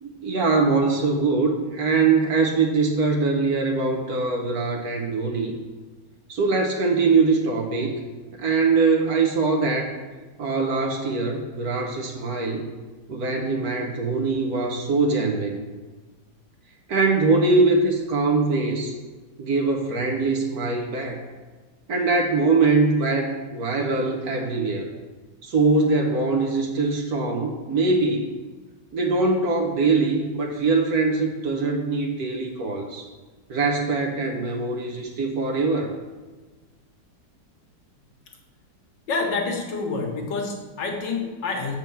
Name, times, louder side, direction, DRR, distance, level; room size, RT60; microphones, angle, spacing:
voice 1, 0.0-5.5 6.3-8.0 8.3-9.9 10.4-12.7 13.1-15.6 16.9-19.0 19.4-21.2 21.9-24.9 25.4-28.3 28.9-33.1 33.5-35.9, right 3 dB, 60° right, 1 dB, 1.2 m, -22 dB
voice 2, 39.1-41.8, left 4 dB, 70° left, 1 dB, 1.8 m, -27 dB
7.5 x 4.6 x 6.9 m, 1.3 s
omnidirectional pair, 2.1 m